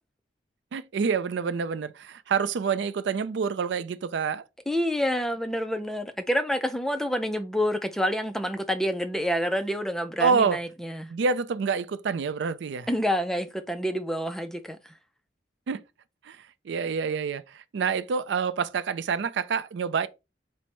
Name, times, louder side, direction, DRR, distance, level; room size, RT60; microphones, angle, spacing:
voice 1, 0.7-4.4 10.2-10.6 11.1-12.9 15.7-15.8 16.2-16.4 16.6-20.1, right 5 dB, 70° right, 0.4 m, -27 dB
voice 2, 4.7-11.1 12.9-14.8, equal, ahead, 0.3 m, -28 dB
4.4 x 2.0 x 4.2 m
head